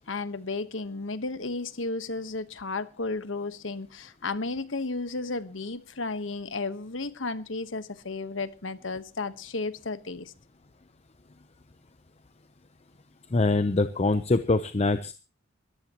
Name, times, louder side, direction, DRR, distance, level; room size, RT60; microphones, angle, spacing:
voice 1, 0.0-10.3, left 3 dB, 80° left, 1.3 m, -33 dB
voice 2, 13.3-15.1, left 2 dB, 35° left, 0.7 m, -24 dB
21.0 x 14.5 x 3.0 m
head